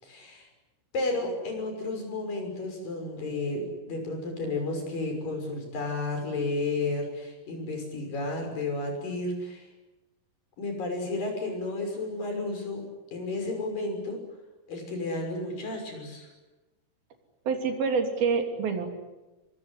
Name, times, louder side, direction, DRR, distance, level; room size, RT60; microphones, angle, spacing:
voice 1, 0.0-0.5 0.9-9.7 10.6-12.8 13.1-14.2 14.7-16.3, left 2 dB, 60° left, 3 dB, 7.8 m, -32 dB
voice 2, 17.5-18.9, right 5 dB, 70° right, 5 dB, 4.9 m, -26 dB
24.5 x 23.5 x 10.0 m, 1.1 s
omnidirectional pair, 4.5 m